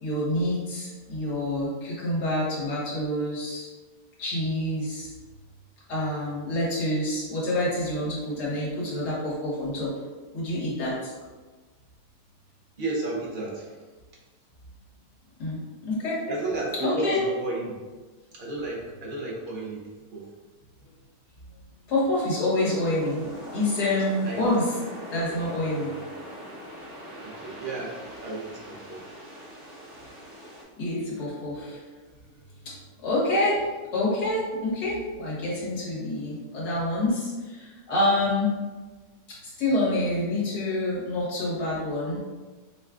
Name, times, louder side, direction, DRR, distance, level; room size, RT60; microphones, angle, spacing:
voice 1, 0.0-3.7 4.2-5.1 5.9-9.9 10.3-11.1 15.4-16.2 16.8-17.2 21.9-23.3 23.5-24.7 25.1-25.9 30.8-31.8 33.0-33.6 33.9-38.5 39.4-42.2, left 1 dB, 65° left, -7 dB, 1.8 m, -27 dB
voice 2, 12.8-13.8 16.3-17.7 18.3-19.8 20.1-20.2 24.2-24.4 27.2-27.9 28.2-29.0, right 2 dB, 60° right, -4 dB, 0.5 m, -32 dB
sound 1, 22.6-30.6, equal, 40° right, 1.1 m, -42 dB
5.0 x 2.4 x 2.4 m, 1.3 s
omnidirectional pair, 1.9 m